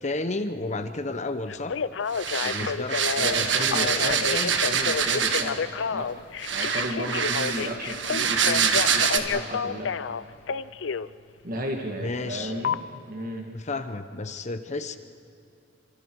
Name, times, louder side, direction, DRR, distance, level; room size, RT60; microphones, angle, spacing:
voice 1, 0.0-1.8 2.4-3.0 3.4-4.5 12.0-12.5 12.9-13.0 13.5-15.0, left 2 dB, 40° left, 10 dB, 1.0 m, -32 dB
Telephone, 1.5-11.1 12.6-12.8, left 6 dB, 85° left, 0.5 m, -29 dB
sound 1, 2.1-5.6 6.4-9.2, right 7 dB, 80° right, 1.5 m, -25 dB
voice 2, 3.2-4.3 4.7-6.1 6.5-9.9 11.4-12.8 13.1-13.5, right 1 dB, 50° right, 2 dB, 2.0 m, -34 dB
29.0 x 26.0 x 4.8 m, 2.6 s
head